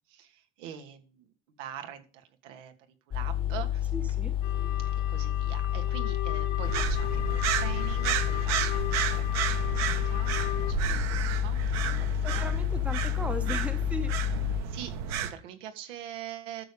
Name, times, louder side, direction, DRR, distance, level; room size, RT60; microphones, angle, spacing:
voice 1, 0.1-1.3 1.6-2.7 3.1-3.9 4.8-10.3 10.6-12.6 14.6-16.6, right 10 dB, 80° right, 7 dB, 2.7 m, -44 dB
sound 1, 3.1-14.6, left 12 dB, 15° left, 0.5 m, -29 dB
voice 2, 3.9-4.4 12.2-14.4, right 1 dB, 5° right, 8 dB, 1.0 m, -37 dB
sound 2, 4.4-10.7, left 13 dB, 55° left, 1.3 m, -38 dB
sound 3, 6.6-15.3, right 8 dB, 45° right, 1.6 m, -32 dB
12.5 x 7.0 x 5.2 m, 0.36 s
cardioid pair, 165°, 36 cm